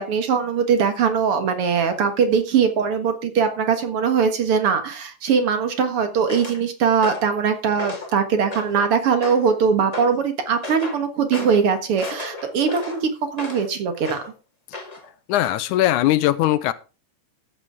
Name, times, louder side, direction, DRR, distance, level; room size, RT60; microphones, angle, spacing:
voice 1, 0.0-14.2, right 6 dB, 50° right, 7 dB, 2.0 m, -21 dB
sound 1, 6.3-6.6 7.0-7.3 7.7-8.1 8.5-8.8 9.2-9.5 9.9-10.2 10.6-11.0 11.3-11.6 12.0-13.7 14.0-14.3 14.7-15.1 15.4-15.6, left 2 dB, 15° left, 2.0 m, -33 dB
voice 2, 15.3-16.7, left 14 dB, 75° left, 15 dB, 2.0 m, -19 dB
14.0 x 9.9 x 3.6 m, 0.31 s
omnidirectional pair, 3.8 m